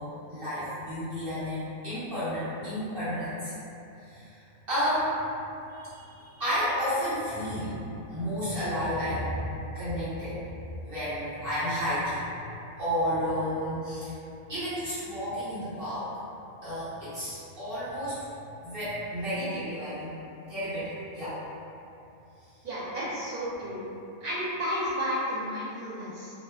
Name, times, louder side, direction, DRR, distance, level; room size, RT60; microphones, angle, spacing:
voice 1, 0.0-3.5 4.1-4.3 4.7-5.1 5.7-9.5 9.7-10.4 10.9-12.2 12.8-14.1 14.5-16.1 16.6-18.2 18.6-20.2 20.5-21.4, equal, 45° right, -14 dB, 0.9 m, -31 dB
voice 2, 22.6-23.8 24.2-26.3, equal, 85° right, -10 dB, 1.1 m, -32 dB
2.8 x 2.2 x 2.2 m, 2.8 s
omnidirectional pair, 1.5 m